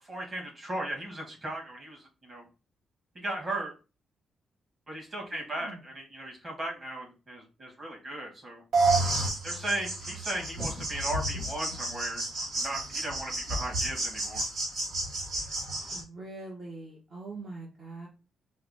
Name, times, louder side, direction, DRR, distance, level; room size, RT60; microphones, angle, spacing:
voice 1, 0.0-2.4 3.1-3.7 4.9-8.6 9.4-12.2 12.5-14.4, right 1 dB, 30° right, -1 dB, 1.6 m, -36 dB
voice 2, 5.3-5.9 15.9-18.1, right 3 dB, 45° right, -3 dB, 1.0 m, -43 dB
sound 1, 8.7-16.0, right 2 dB, 65° right, 2.0 m, -31 dB
4.6 x 2.1 x 3.4 m, 0.32 s
cardioid pair, 130°, 0 cm